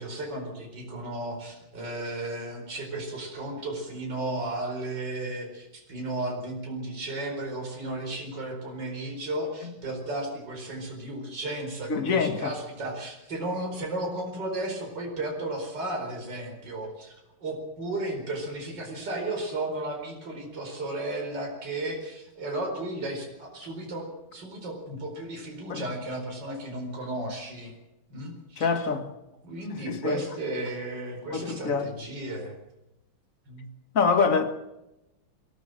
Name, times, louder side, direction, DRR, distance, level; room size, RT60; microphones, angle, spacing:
voice 1, 0.0-27.7 28.1-28.7 29.4-32.5 33.5-33.6, right 2 dB, 55° right, 5.2 m, -34 dB
voice 2, 11.9-12.5 25.7-25.9 28.6-29.1 29.8-30.2 31.3-31.9 33.9-34.5, left 5 dB, 40° left, 2.0 m, -25 dB
22.0 x 15.5 x 7.8 m
omnidirectional pair, 2.3 m